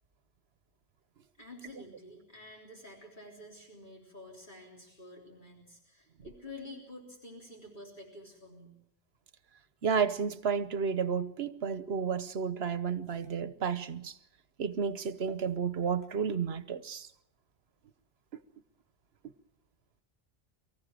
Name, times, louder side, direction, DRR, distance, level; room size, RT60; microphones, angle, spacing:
voice 1, 1.4-8.8, left 2 dB, 50° left, 3.8 m, -49 dB
voice 2, 9.8-14.2 14.6-17.1, right 6 dB, 80° right, 1.2 m, -32 dB
24.0 x 14.5 x 7.6 m
omnidirectional pair, 1.1 m